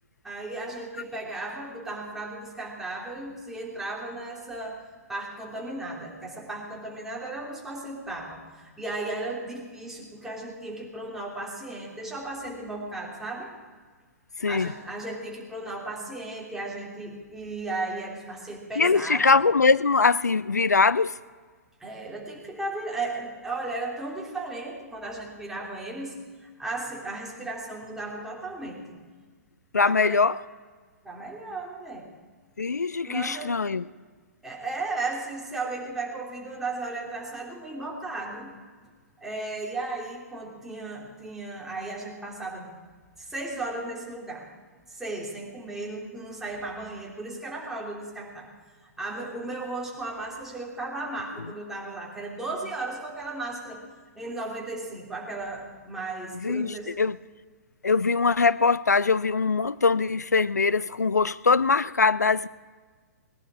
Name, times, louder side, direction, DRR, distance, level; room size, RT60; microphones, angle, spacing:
voice 1, 0.2-4.8 5.1-13.5 14.5-19.3 21.8-29.0 29.8-30.2 31.0-32.1 33.1-33.7 34.4-38.5 39.2-42.8 43.2-44.5 44.9-48.5 49.0-53.8 54.1-56.9, right 2 dB, 5° right, -3 dB, 3.1 m, -35 dB
voice 2, 14.4-14.7 18.8-21.2 29.7-30.4 32.6-33.8 56.3-57.2 57.8-62.5, left 4 dB, 85° left, 19 dB, 0.4 m, -22 dB
20.0 x 11.0 x 4.9 m, 1.5 s
figure-of-eight pair, 115°, 9 cm